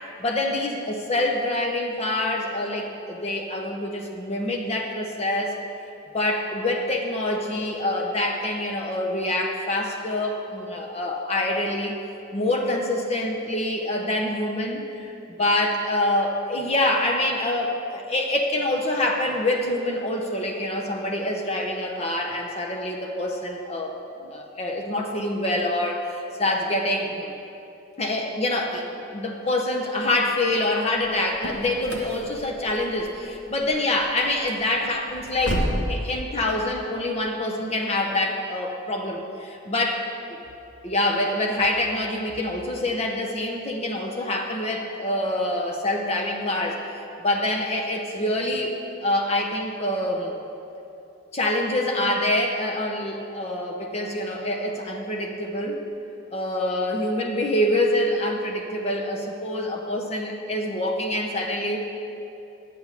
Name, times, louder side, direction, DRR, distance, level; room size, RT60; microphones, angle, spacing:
voice 1, 0.2-5.6 6.1-12.0 12.3-15.1 15.4-24.0 24.2-27.3 28.0-28.8 29.1-40.1 40.8-48.8 49.0-50.4 51.3-55.8 56.3-61.8, left 1 dB, 30° left, 1 dB, 0.7 m, -26 dB
sound 1, 30.9-35.9, equal, 60° left, 1.2 m, -32 dB
8.4 x 6.1 x 8.2 m, 2.8 s
head